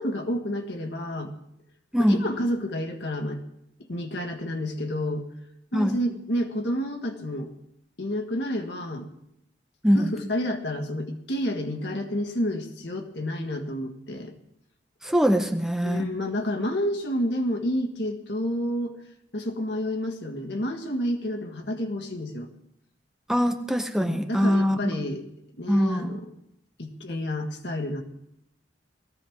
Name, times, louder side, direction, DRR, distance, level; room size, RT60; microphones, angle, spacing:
voice 1, 0.0-1.3 2.1-3.4 3.8-5.3 5.7-7.5 8.0-9.1 10.0-14.3 15.8-19.0 19.3-22.5 24.0-25.2 25.6-26.3 26.8-28.0, left 1 dB, 70° left, 4 dB, 1.6 m, -30 dB
voice 2, 15.0-16.1 23.3-25.0 25.7-26.2, equal, 5° right, 5 dB, 0.7 m, -23 dB
18.5 x 14.5 x 3.6 m, 0.80 s
head